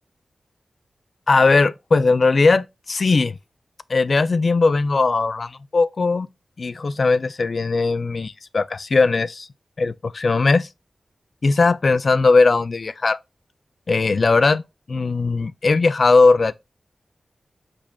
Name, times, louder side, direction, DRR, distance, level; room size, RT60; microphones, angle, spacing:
voice 1, 1.3-3.4 3.9-6.3 6.6-9.5 9.8-10.7 11.4-13.2 13.9-14.6 14.9-16.5, left 3 dB, 60° left, 0.3 m, -18 dB
5.1 x 4.3 x 2.3 m
wide cardioid pair, 70°, 0 cm